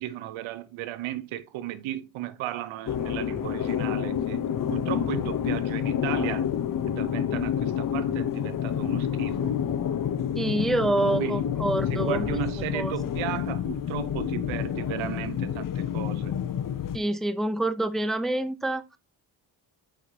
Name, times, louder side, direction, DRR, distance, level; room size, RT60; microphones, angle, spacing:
voice 1, 0.0-6.5 6.9-9.6 11.1-11.5 11.9-16.4, right 13 dB, 85° right, 0.9 m, -35 dB
sound 1, 2.9-17.0, left 9 dB, 45° left, 0.8 m, -28 dB
voice 2, 10.4-12.3 12.7-12.9 16.9-19.0, right 1 dB, ahead, 0.5 m, -27 dB
7.8 x 5.1 x 2.8 m
cardioid pair, 85°, 46 cm